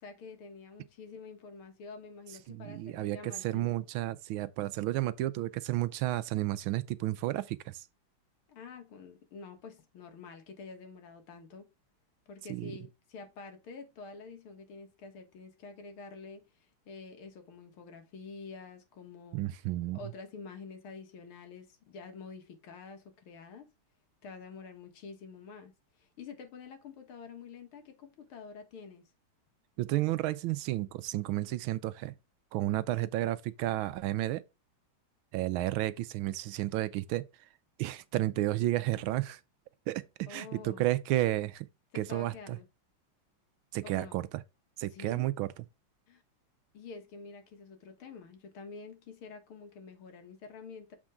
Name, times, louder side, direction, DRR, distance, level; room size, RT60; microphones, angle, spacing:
voice 1, 0.0-3.8 8.5-11.7 12.3-19.4 19.9-23.7 24.2-25.7 26.0-29.0 40.3-40.9 41.9-42.7 43.8-44.2 44.9-45.3 46.1-46.2 46.7-51.0, left 4 dB, 85° left, 2.3 m, -48 dB
voice 2, 2.5-7.8 12.5-12.7 19.3-20.1 29.8-32.1 32.5-34.4 35.3-37.2 37.8-39.4 39.9-41.7 41.9-42.6 43.7-44.3 44.8-45.5, right 15 dB, 80° right, 1.4 m, -32 dB
7.5 x 4.4 x 3.5 m
omnidirectional pair, 2.3 m